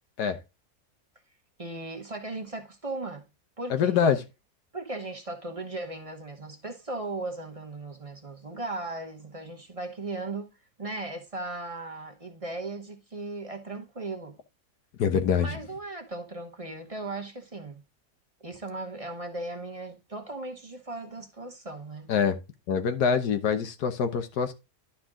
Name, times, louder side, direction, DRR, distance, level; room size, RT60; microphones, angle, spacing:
voice 1, 1.6-3.2 3.6-4.0 4.7-10.5 10.8-14.4 15.4-17.8 18.4-22.1, right 2 dB, 25° right, 0.9 m, -37 dB
voice 2, 3.7-4.2 15.0-15.5 22.1-22.4 22.7-24.5, left 7 dB, 80° left, 1.5 m, -25 dB
11.5 x 4.3 x 3.6 m
omnidirectional pair, 1.7 m